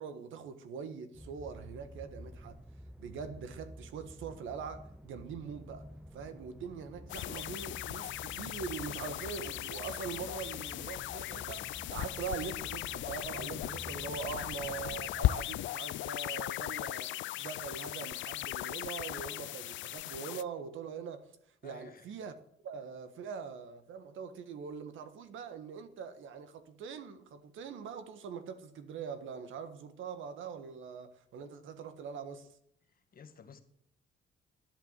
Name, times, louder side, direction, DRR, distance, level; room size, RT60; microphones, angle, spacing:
voice 1, 0.0-2.6 3.0-21.3 21.6-22.3 22.6-32.5, right 6 dB, 80° right, 1.5 m, -43 dB
sound 1, 1.1-15.4, equal, 5° right, 0.5 m, -50 dB
sound 2, 7.1-20.4, left 15 dB, 75° left, 0.4 m, -37 dB
voice 2, 21.6-22.1 32.9-33.6, left 6 dB, 45° left, 1.8 m, -54 dB
11.0 x 10.5 x 7.5 m
cardioid pair, 90°, 20 cm